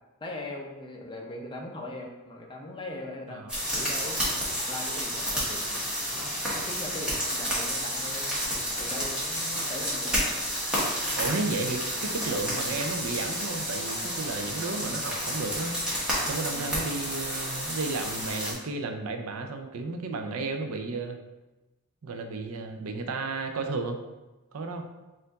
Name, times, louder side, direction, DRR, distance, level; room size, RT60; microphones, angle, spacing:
voice 1, 0.2-3.5 3.7-4.2 4.5-5.6 6.1-8.4 8.8-10.3 11.2-11.4 16.4-16.8, left 1 dB, 20° left, 0 dB, 0.5 m, -40 dB
sound 1, 3.5-18.5, equal, 5° right, 1.3 m, -30 dB
voice 2, 11.2-15.7 16.2-21.2 22.0-24.0 24.5-24.8, right 3 dB, 75° right, 5 dB, 0.5 m, -33 dB
4.3 x 2.5 x 3.9 m, 1.1 s
head